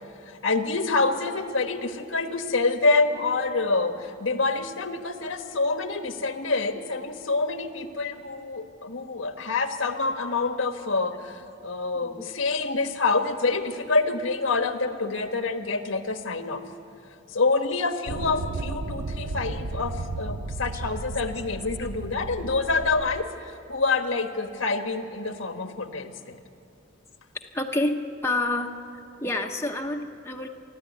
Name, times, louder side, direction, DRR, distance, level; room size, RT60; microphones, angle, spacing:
voice 1, 0.3-16.6 17.3-26.4, left 3 dB, 90° left, 7 dB, 1.3 m, -27 dB
sound 1, 18.1-23.2, right 3 dB, 90° right, 0.7 m, -34 dB
voice 2, 27.5-28.7 29.2-30.5, left 2 dB, 15° left, 2 dB, 0.9 m, -28 dB
28.0 x 12.0 x 9.3 m, 2.5 s
head